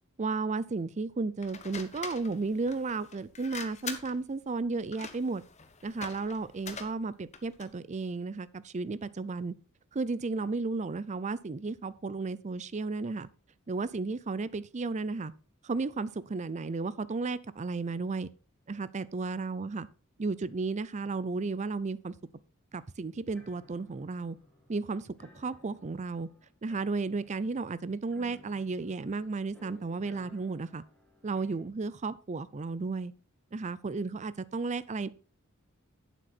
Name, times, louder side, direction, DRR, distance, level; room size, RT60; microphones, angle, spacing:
voice 1, 0.2-5.4 5.8-9.5 9.9-13.3 13.7-15.3 15.6-18.3 18.7-19.9 20.2-22.1 22.7-24.4 24.7-26.3 26.6-30.8 31.2-33.1 33.5-35.1, right 3 dB, 35° right, 0.5 m, -33 dB
sound 1, 1.4-7.8, left 5 dB, 35° left, 1.1 m, -44 dB
sound 2, 23.3-31.7, left 1 dB, 5° left, 1.9 m, -59 dB
9.2 x 7.7 x 4.3 m
head